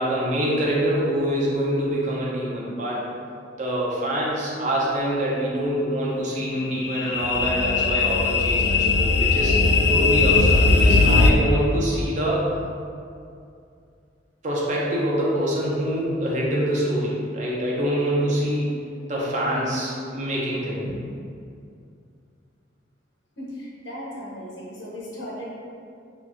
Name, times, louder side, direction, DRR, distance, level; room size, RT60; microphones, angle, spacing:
voice 1, 0.0-3.1 3.5-9.6 9.9-12.4 14.4-18.8 19.1-20.9, equal, 40° right, -5 dB, 0.6 m, -25 dB
sound 1, 6.2-11.3, left 3 dB, 70° left, 0.3 m, -19 dB
voice 2, 23.4-25.5, equal, 90° left, -7 dB, 1.1 m, -36 dB
3.6 x 2.7 x 2.6 m, 2.4 s
head